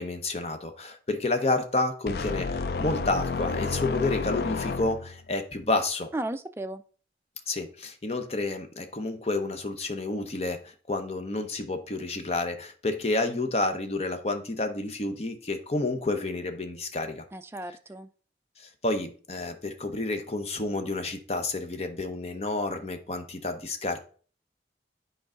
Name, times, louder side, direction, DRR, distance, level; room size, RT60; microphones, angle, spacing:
voice 1, 0.0-6.1 7.5-17.2 18.6-24.0, left 2 dB, 35° left, 7 dB, 0.8 m, -30 dB
sound 1, 2.1-5.2, left 4 dB, 60° left, 0.4 m, -30 dB
voice 2, 6.1-6.8 17.3-18.1, right 1 dB, 15° right, 8 dB, 0.4 m, -35 dB
8.8 x 4.7 x 3.8 m, 0.41 s
head